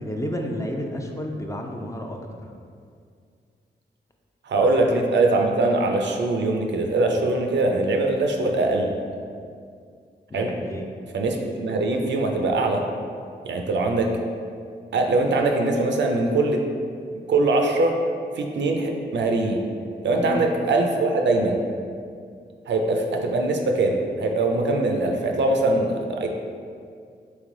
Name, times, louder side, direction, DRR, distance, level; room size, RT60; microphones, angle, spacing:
voice 1, 0.0-2.5 4.6-4.7 10.3-10.9 20.1-20.5, equal, 15° left, 1 dB, 0.5 m, -31 dB
voice 2, 4.4-8.9 10.3-10.5 11.1-12.8 13.4-14.1 14.9-16.6 17.3-17.9 18.4-19.6 20.0-21.6 22.7-26.3, right 2 dB, 70° right, 3 dB, 0.5 m, -22 dB
3.2 x 3.0 x 3.7 m, 2.2 s
cardioid pair, 45°, 20 cm